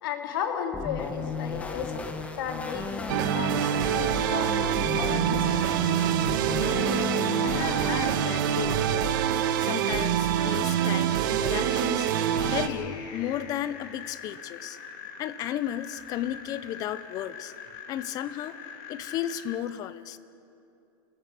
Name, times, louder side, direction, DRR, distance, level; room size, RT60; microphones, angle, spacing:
voice 1, 0.0-2.0 2.4-4.5 4.9-5.6, left 7 dB, 70° left, 4 dB, 3.0 m, -34 dB
sound 1, 0.7-8.7, left 4 dB, 10° left, 1.4 m, -35 dB
sound 2, 3.1-12.7, right 9 dB, 60° right, 1.5 m, -25 dB
voice 2, 7.4-9.1 9.6-12.1 12.5-14.8 15.2-17.5 17.9-18.5 18.9-20.2, left 11 dB, 35° left, 15 dB, 0.8 m, -34 dB
sound 3, 11.8-19.6, left 7 dB, 50° left, 2.8 m, -43 dB
29.0 x 14.5 x 8.4 m, 2.7 s
supercardioid pair, 150°, 12 cm